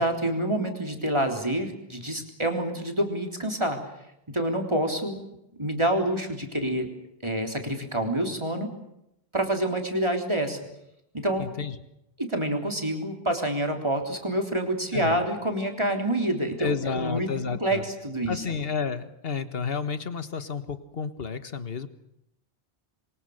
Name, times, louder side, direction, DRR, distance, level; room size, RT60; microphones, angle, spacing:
voice 1, 0.0-3.8 4.3-5.2 5.6-6.9 7.2-8.7 9.3-10.6 11.1-11.5 12.2-18.4, right 1 dB, 25° right, 3 dB, 3.7 m, -27 dB
voice 2, 11.4-11.8 14.9-15.2 16.6-17.8 18.3-21.9, left 5 dB, 70° left, 11 dB, 1.7 m, -31 dB
27.5 x 23.5 x 6.7 m, 0.82 s
omnidirectional pair, 1.0 m